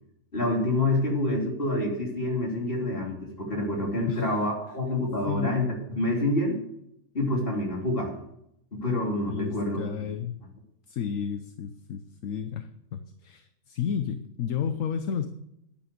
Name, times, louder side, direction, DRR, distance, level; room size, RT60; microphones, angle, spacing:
voice 1, 0.3-6.6 7.1-8.1 8.7-9.9, left 1 dB, 40° left, -1 dB, 3.5 m, -27 dB
voice 2, 4.1-4.4 5.3-5.5 9.3-10.4 10.9-15.3, left 8 dB, 65° left, 9 dB, 1.2 m, -32 dB
10.5 x 10.5 x 6.8 m, 0.78 s
omnidirectional pair, 1.6 m